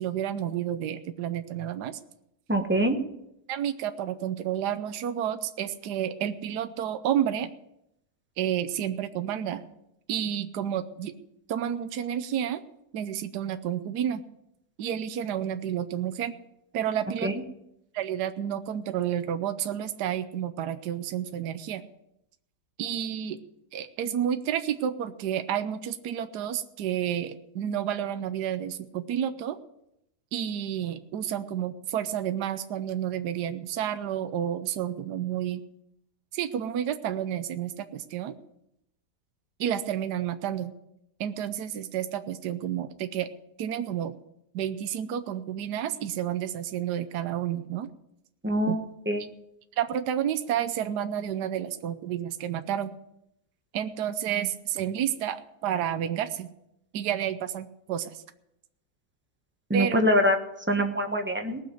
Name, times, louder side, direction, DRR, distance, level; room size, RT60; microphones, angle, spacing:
voice 1, 0.0-2.0 3.5-7.5 8.4-9.7 10.1-11.1 11.5-12.6 12.9-14.2 14.8-16.3 16.7-17.3 17.9-21.8 22.8-23.4 23.7-29.6 30.3-35.6 36.3-38.3 39.6-40.7 41.2-43.3 43.6-44.2 44.5-47.9 48.7-48.8 49.8-52.9 53.7-56.5 56.9-58.2 59.7-60.0, right 10 dB, 75° right, 9 dB, 1.3 m, -30 dB
voice 2, 2.5-3.0 17.2-17.3 48.4-48.8 49.1-49.2 59.7-60.4 60.7-61.6, equal, 5° right, 4 dB, 1.1 m, -24 dB
19.0 x 6.7 x 7.8 m, 0.81 s
omnidirectional pair, 1.8 m